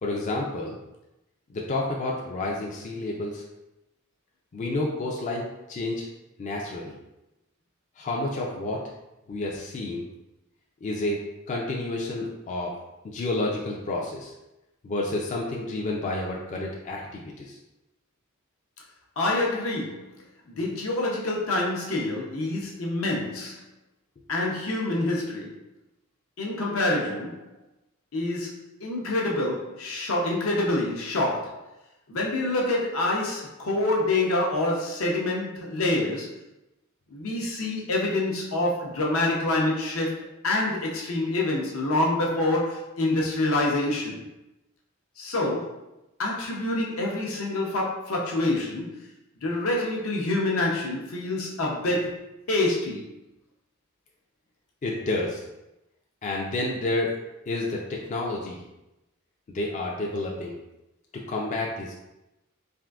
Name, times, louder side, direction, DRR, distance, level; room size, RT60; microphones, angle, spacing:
voice 1, 0.0-0.8 1.5-3.4 4.5-6.1 6.4-6.9 8.0-8.8 9.3-10.0 10.8-12.7 13.0-14.3 14.8-17.6 54.8-55.4 56.2-57.1 57.5-58.6 59.5-60.6 61.1-62.0, left 2 dB, 35° left, -2 dB, 0.3 m, -30 dB
voice 2, 19.2-20.1 20.5-23.5 24.3-25.5 26.4-27.4 28.1-28.5 28.8-31.6 32.1-36.3 37.1-44.2 45.2-45.7 46.2-48.9 49.4-52.1 52.5-53.1, left 2 dB, 75° left, -2 dB, 0.7 m, -26 dB
3.5 x 2.5 x 2.3 m, 0.94 s
head